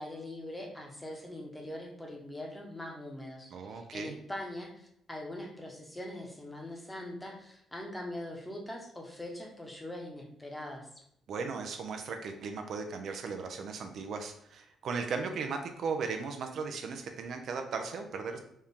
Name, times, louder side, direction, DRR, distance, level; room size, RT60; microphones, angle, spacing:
voice 1, 0.0-10.9, left 1 dB, 10° left, 0 dB, 1.0 m, -42 dB
voice 2, 3.5-4.2 11.3-18.4, right 5 dB, 65° right, 5 dB, 0.5 m, -37 dB
4.2 x 2.4 x 3.6 m, 0.73 s
cardioid pair, 90°, 0 cm